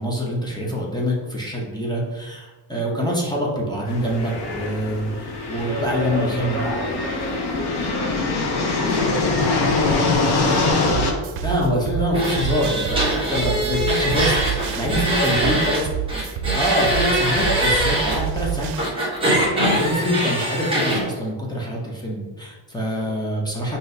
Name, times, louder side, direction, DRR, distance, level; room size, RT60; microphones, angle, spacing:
voice 1, 0.0-6.6 11.4-15.8 16.5-18.7 19.2-23.8, equal, 10° left, -4 dB, 0.6 m, -25 dB
sound 1, 3.9-11.1, left 3 dB, 55° left, 0.8 m, -23 dB
voice 2, 5.6-10.9 13.2-13.5 15.1-15.6 22.8-23.3, right 1 dB, 40° right, -4 dB, 0.9 m, -33 dB
sound 2, 10.9-18.9, right 9 dB, 80° right, 0.5 m, -28 dB
sound 3, 12.1-15.8 16.1-18.1 18.8-21.0, equal, 10° right, 1.1 m, -22 dB
5.9 x 2.7 x 2.6 m, 1.3 s
cardioid pair, 150°, 47 cm